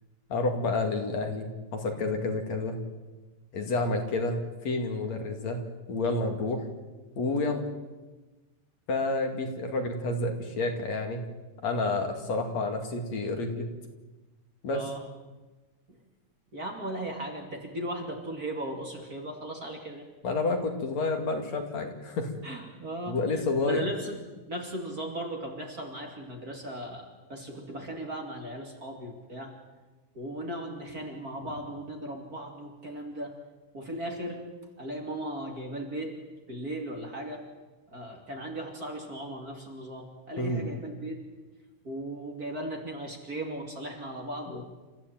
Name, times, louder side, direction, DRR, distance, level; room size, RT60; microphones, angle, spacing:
voice 1, 0.3-2.8 3.5-4.4 4.6-6.6 7.2-7.7 8.9-11.3 11.6-13.7 14.6-14.8 20.2-22.3 23.1-23.9 40.4-40.6 44.5-44.6, left 3 dB, 60° left, 4 dB, 3.4 m, -29 dB
voice 2, 16.5-20.1 22.4-24.2 24.5-29.5 30.1-33.3 33.7-34.5 34.8-36.2 36.5-37.4 37.9-41.2 41.8-44.6, right 1 dB, 30° right, 2 dB, 3.0 m, -37 dB
29.5 x 14.5 x 9.0 m, 1.2 s
omnidirectional pair, 3.5 m